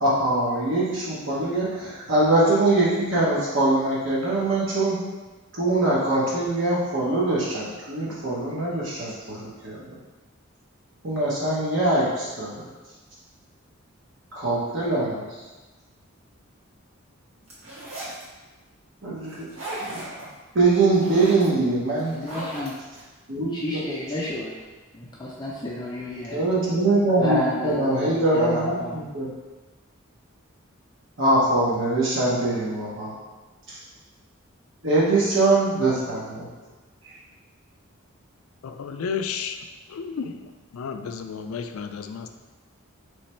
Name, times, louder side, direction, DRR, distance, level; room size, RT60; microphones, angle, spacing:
voice 1, 0.0-5.0 5.5-9.9 11.0-12.7 14.3-15.2 19.0-19.5 19.8-20.3 20.5-22.2 23.3-23.5 26.3-27.4 27.7-29.3 31.2-33.2 33.7-33.8 34.8-36.5 37.0-37.1, right 2 dB, 60° right, -7 dB, 0.9 m, -23 dB
sound 1, 17.5-18.2 19.3-20.2 20.6-21.5 22.0-23.0, right 1 dB, 80° right, 1.4 m, -36 dB
voice 2, 22.1-22.7 23.5-24.5 24.9-26.4 27.2-29.0, left 1 dB, 20° left, -6 dB, 0.5 m, -30 dB
voice 3, 38.6-39.6 39.9-42.3, left 6 dB, 85° left, 7 dB, 0.4 m, -32 dB
3.2 x 3.1 x 4.3 m, 1.2 s
head